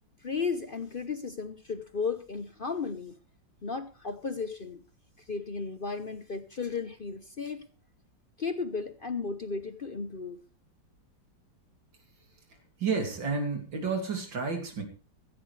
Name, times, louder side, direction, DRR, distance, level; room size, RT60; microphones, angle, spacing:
voice 1, 0.2-3.2 3.6-4.8 5.3-7.7 8.4-10.4, left 5 dB, 45° left, 10 dB, 0.7 m, -34 dB
voice 2, 12.8-14.8, right 4 dB, 80° right, 4 dB, 3.6 m, -31 dB
15.5 x 14.5 x 3.3 m, 0.34 s
omnidirectional pair, 2.0 m